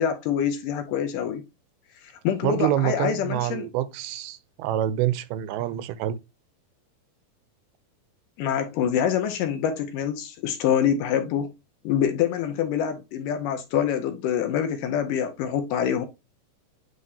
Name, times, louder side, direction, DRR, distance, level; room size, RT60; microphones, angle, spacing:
voice 1, 0.0-1.4 2.2-3.7 8.4-11.5 11.8-16.1, left 9 dB, 80° left, 2.1 m, -25 dB
voice 2, 2.4-6.2, right 12 dB, 85° right, 2.5 m, -26 dB
9.5 x 3.6 x 2.8 m
omnidirectional pair, 4.4 m